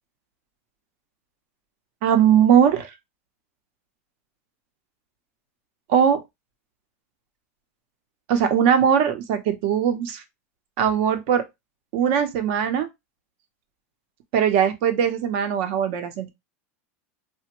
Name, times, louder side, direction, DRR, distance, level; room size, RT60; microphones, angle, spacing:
voice 1, 2.0-2.9 5.9-6.2 8.3-10.2 10.8-11.4 11.9-12.9 14.3-16.3, right 8 dB, 55° right, 0.7 m, -20 dB
3.3 x 2.1 x 3.0 m
supercardioid pair, 155°, 8 cm